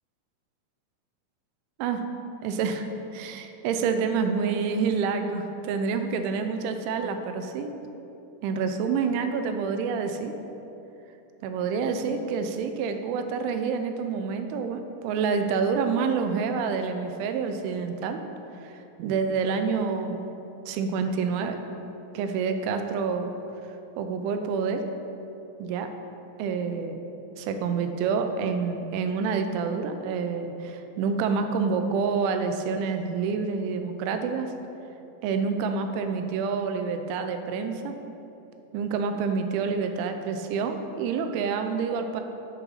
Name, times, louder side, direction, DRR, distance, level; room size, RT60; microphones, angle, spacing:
voice 1, 2.4-2.9 3.1-7.7 8.4-10.3 11.4-18.2 18.5-20.2 20.7-21.6 22.1-23.3 24.0-24.8 25.6-25.9 26.4-27.0 27.4-34.5 35.2-38.0 38.7-42.2, right 5 dB, 85° right, 7 dB, 2.9 m, -28 dB
9.6 x 4.9 x 5.6 m, 2.9 s
omnidirectional pair, 5.6 m